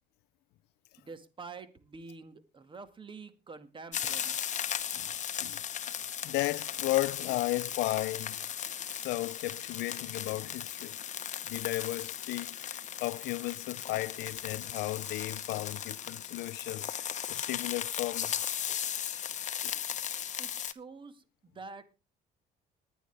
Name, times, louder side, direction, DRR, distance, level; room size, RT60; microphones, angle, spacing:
voice 1, 1.0-4.4 20.4-21.8, right 4 dB, 30° right, 2.0 m, -47 dB
sound 1, 3.9-20.7, left 9 dB, 45° left, 1.0 m, -37 dB
voice 2, 6.2-8.4 8.9-11.0 11.5-18.3, left 19 dB, 85° left, 0.6 m, -34 dB
19.5 x 10.0 x 3.4 m
cardioid pair, 110°, 17 cm